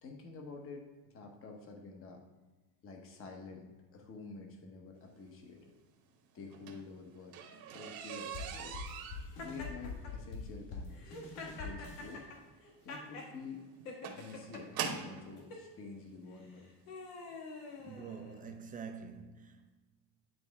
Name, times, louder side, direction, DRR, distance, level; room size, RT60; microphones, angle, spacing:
voice 1, 0.0-2.2 2.8-5.7 6.3-7.4 7.7-8.8 9.4-11.2 11.4-12.2 12.8-13.7 14.1-16.7, left 4 dB, 30° left, 1.0 m, -49 dB
sound 1, 6.4-15.3 16.2-16.3 16.8-17.0 17.3-17.4 17.8-17.9, right 7 dB, 50° right, 1.0 m, -43 dB
sound 2, 8.3-12.2, left 4 dB, 50° left, 1.7 m, -45 dB
Laughter, 9.4-10.1 10.9-13.3 13.9-14.6 15.4-15.7 16.4-18.6, left 3 dB, 80° left, 1.8 m, -47 dB
voice 2, 17.8-19.7, right 6 dB, 20° right, 0.4 m, -46 dB
10.5 x 4.2 x 3.5 m
cardioid pair, 160°, 44 cm